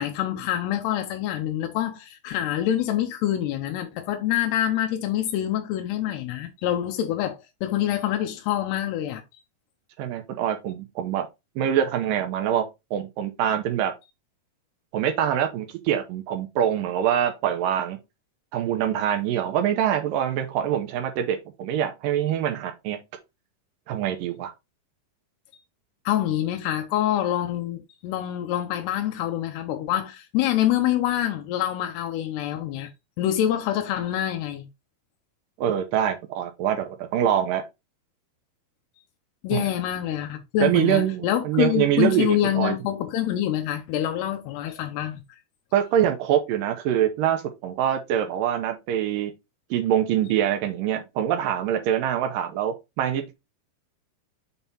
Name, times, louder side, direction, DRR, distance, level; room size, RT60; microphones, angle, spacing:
voice 1, 0.0-9.2 26.1-32.9 33.2-34.7 39.4-45.2, left 12 dB, 90° left, 2.9 m, -26 dB
voice 2, 10.0-11.3 11.6-12.7 12.9-13.9 14.9-18.0 18.5-23.0 23.9-24.5 35.6-37.6 39.5-39.7 40.6-42.8 45.7-49.3 49.7-53.3, right 10 dB, 75° right, 2.1 m, -24 dB
7.1 x 3.5 x 4.1 m
omnidirectional pair, 4.8 m